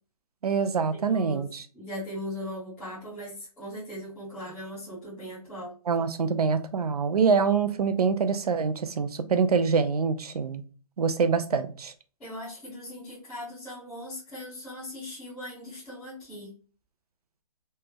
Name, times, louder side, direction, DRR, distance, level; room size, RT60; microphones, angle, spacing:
voice 1, 0.4-1.7 5.9-10.6 11.0-11.9, right 5 dB, 70° right, 0.5 m, -25 dB
voice 2, 1.1-1.4 1.7-5.7 12.2-16.5, left 1 dB, 5° left, 0.7 m, -39 dB
3.2 x 2.0 x 3.4 m
hypercardioid pair, 180°, 20 cm